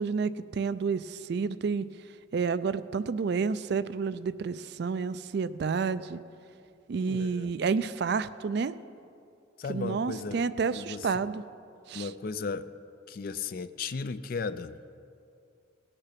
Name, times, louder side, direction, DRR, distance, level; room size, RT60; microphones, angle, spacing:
voice 1, 0.0-1.9 2.3-6.2 6.9-8.7 9.7-11.4 11.9-12.1, right 5 dB, 55° right, 14 dB, 0.3 m, -30 dB
voice 2, 7.0-7.5 9.6-10.4 10.7-11.1 11.9-12.7 13.1-14.7, left 4 dB, 45° left, 12 dB, 0.4 m, -35 dB
18.5 x 6.7 x 5.9 m, 2.5 s
head